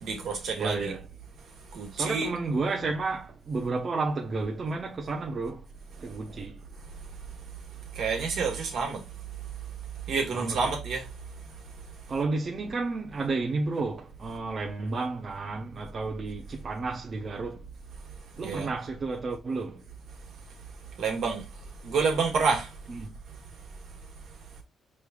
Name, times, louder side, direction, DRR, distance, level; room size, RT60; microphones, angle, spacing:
voice 1, 0.0-0.9 1.7-2.3 7.9-9.0 10.1-11.1 18.4-18.7 21.0-21.4 21.8-22.8, right 5 dB, 70° right, 1.6 m, -28 dB
voice 2, 0.6-1.0 1.9-5.6 6.0-6.6 10.3-10.8 12.1-17.6 18.4-19.8 22.9-23.1, right 3 dB, 40° right, 0.8 m, -31 dB
5.2 x 3.2 x 2.4 m
cardioid pair, 90°, 0 cm